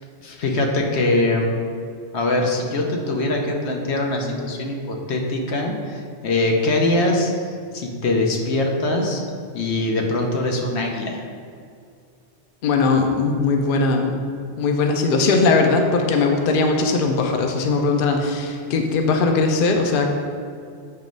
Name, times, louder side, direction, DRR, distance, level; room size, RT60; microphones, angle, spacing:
voice 1, 0.2-1.5 2.1-7.3 7.7-9.2 9.5-11.2, left 2 dB, 80° left, 1 dB, 1.1 m, -22 dB
voice 2, 12.6-14.2 14.6-20.1, left 3 dB, 60° left, 3 dB, 0.7 m, -19 dB
7.7 x 3.1 x 5.2 m, 2.3 s
omnidirectional pair, 1.1 m